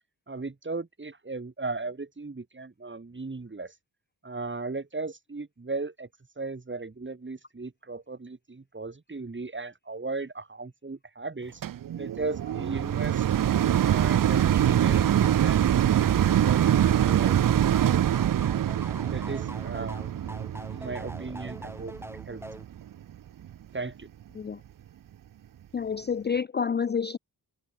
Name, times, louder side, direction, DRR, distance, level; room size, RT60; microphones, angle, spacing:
voice 1, 0.3-3.7 4.2-6.1 6.4-11.6 12.0-17.8 19.0-20.1 20.7-21.9 22.3-22.4 23.7-24.1, right 3 dB, 30° right, 2.8 m, -37 dB
exhaust fan kitchen stove turn on turn off short, 11.6-22.9 23.5-23.6, right 10 dB, 55° right, 0.6 m, -24 dB
sound 1, 14.3-22.6, right 1 dB, 5° right, 1.4 m, -42 dB
voice 2, 25.7-27.2, left 6 dB, 25° left, 0.4 m, -28 dB
cardioid pair, 75°, 39 cm